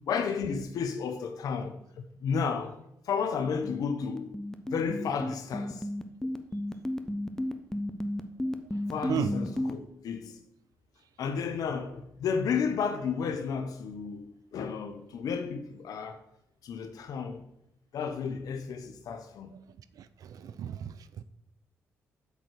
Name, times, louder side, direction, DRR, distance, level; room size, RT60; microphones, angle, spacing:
voice 1, 0.1-2.8 3.1-4.3 4.7-5.9 8.9-10.4 11.2-16.2 16.6-17.4 17.9-19.5, left 6 dB, 70° left, 0.9 m, -32 dB
sound 1, 3.6-9.7, left 1 dB, 10° left, 0.8 m, -32 dB
voice 2, 20.0-21.2, right 9 dB, 70° right, 0.5 m, -34 dB
8.3 x 4.1 x 6.4 m
hypercardioid pair, 50°, 7 cm